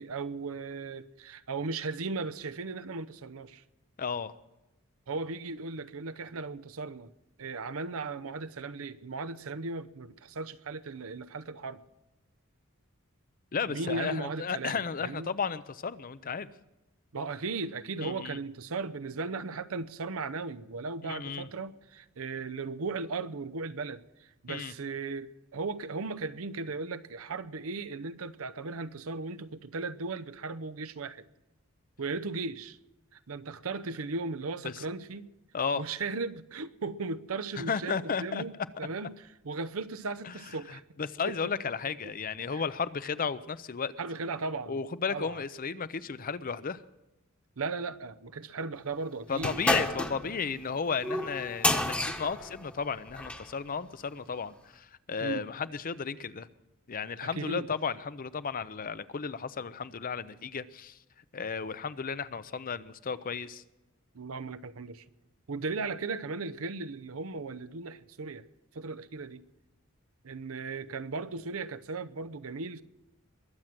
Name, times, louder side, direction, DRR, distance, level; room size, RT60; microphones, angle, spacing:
voice 1, 0.0-3.6 5.1-7.1 7.4-11.8 13.7-15.3 17.1-31.3 32.0-32.8 33.1-35.3 35.7-38.5 38.8-40.8 41.3-41.5 42.0-42.1 42.5-42.6 44.0-45.4 47.6-49.6 55.2-55.5 57.2-57.7 64.1-65.0 65.5-68.5 68.7-69.4 70.2-72.8, right 3 dB, 75° right, 0.7 m, -37 dB
voice 2, 4.0-4.3 13.5-16.5 18.0-18.4 21.0-21.5 24.5-24.7 34.6-34.7 35.5-35.8 37.6-38.4 40.2-40.3 40.7-43.9 44.7-46.8 49.3-56.5 56.9-61.0 61.3-63.6, left 5 dB, 40° left, 0.6 m, -34 dB
sound 1, 49.4-53.5, left 1 dB, 5° left, 1.1 m, -31 dB
22.0 x 7.8 x 6.0 m
head